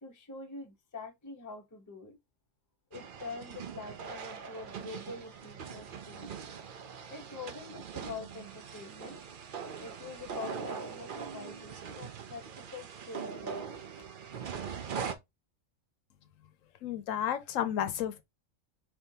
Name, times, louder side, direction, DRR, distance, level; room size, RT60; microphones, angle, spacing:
voice 1, 0.0-2.2 2.9-6.3 7.1-9.2 9.8-13.6, left 4 dB, 20° left, 0.6 m, -45 dB
sound 1, 2.9-15.2, right 6 dB, 55° right, 0.6 m, -42 dB
voice 2, 16.8-18.2, left 10 dB, 85° left, 1.0 m, -32 dB
4.5 x 3.5 x 2.7 m
omnidirectional pair, 1.4 m